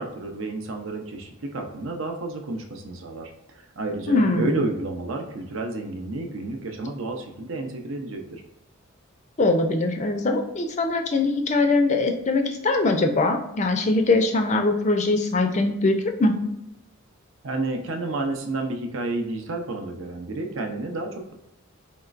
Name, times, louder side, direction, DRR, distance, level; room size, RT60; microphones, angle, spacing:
voice 1, 0.0-8.4 17.4-21.3, right 2 dB, 65° right, 3 dB, 0.6 m, -31 dB
voice 2, 4.1-4.6 9.4-16.4, left 2 dB, 35° left, 4 dB, 0.4 m, -22 dB
4.3 x 3.0 x 2.5 m, 0.85 s
head